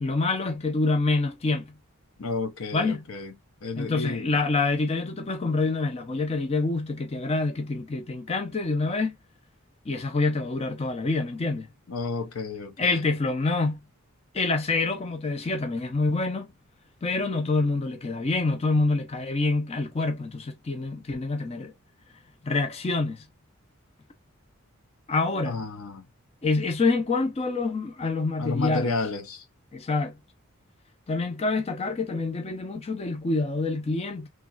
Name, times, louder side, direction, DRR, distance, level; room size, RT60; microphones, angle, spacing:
voice 1, 0.0-1.7 2.7-3.1 3.8-9.2 9.9-11.7 12.8-13.8 14.3-16.5 17.0-21.7 22.4-23.2 25.1-25.6 26.4-28.9 29.7-30.2 31.1-34.3, left 3 dB, 30° left, 0.5 m, -26 dB
voice 2, 2.2-3.3 3.6-4.4 11.9-13.0 25.4-26.0 28.4-29.4, left 3 dB, 75° left, 0.7 m, -31 dB
3.0 x 2.3 x 2.4 m
head